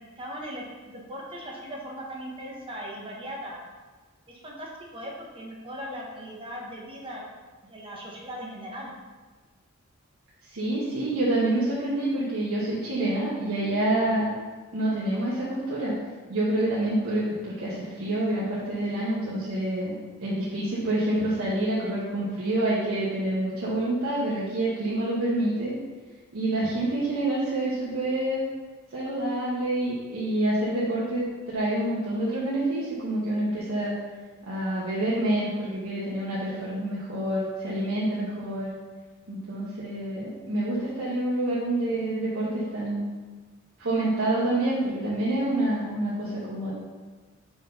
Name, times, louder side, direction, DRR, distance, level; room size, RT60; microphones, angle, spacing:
voice 1, 0.0-3.6 4.3-7.2 7.6-8.9, equal, 25° right, -2 dB, 1.1 m, -39 dB
voice 2, 10.5-14.3 14.7-15.9 16.3-19.9 20.2-25.7 26.3-28.4 28.9-33.9 34.5-38.7 39.3-43.1 43.8-46.7, right 1 dB, 75° right, -8 dB, 1.1 m, -27 dB
5.0 x 3.9 x 5.4 m, 1.4 s
head